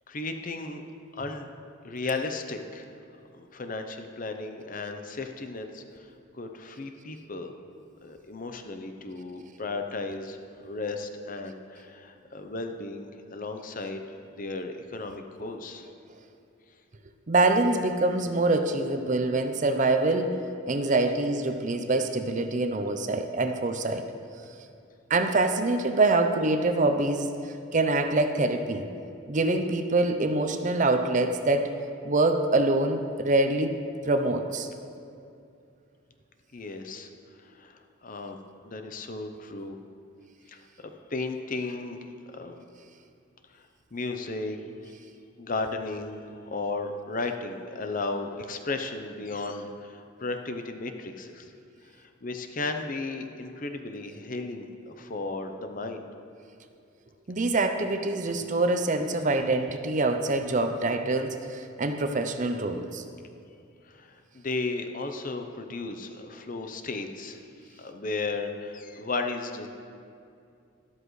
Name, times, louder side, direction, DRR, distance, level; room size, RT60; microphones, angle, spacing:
voice 1, 0.1-0.8 1.1-1.5 1.8-2.9 3.3-7.5 8.0-14.0 14.4-15.9 36.5-37.1 37.4-38.4 38.6-39.8 40.5-42.0 42.3-42.6 43.5-43.6 43.9-44.6 44.8-44.9 45.4-51.5 51.9-56.0 63.8-69.7, left 3 dB, 40° left, 6 dB, 0.7 m, -35 dB
voice 2, 17.3-20.4 20.7-24.1 25.1-28.9 29.3-31.7 32.0-33.8 34.1-34.7 57.3-63.0, right 2 dB, 40° right, 7 dB, 0.6 m, -25 dB
13.0 x 12.5 x 3.2 m, 2.5 s
head